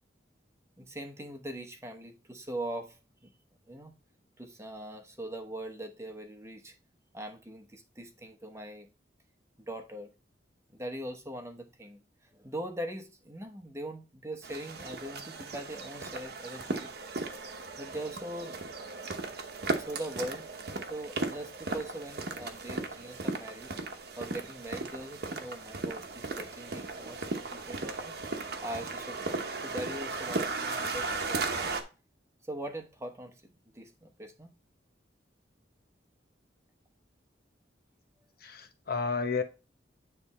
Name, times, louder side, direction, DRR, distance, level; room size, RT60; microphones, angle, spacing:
voice 1, 0.8-3.3 3.7-3.9 4.4-6.7 7.1-8.9 9.6-10.1 10.7-16.9 17.8-18.6 19.6-20.5 20.9-23.7 24.2-28.2 28.6-31.7 32.5-34.5, right 1 dB, 15° right, 0.9 m, -41 dB
sound 1, 14.4-31.8, right 3 dB, 60° right, 1.0 m, -36 dB
voice 2, 38.4-39.4, left 4 dB, 55° left, 0.9 m, -31 dB
9.3 x 3.4 x 4.1 m
head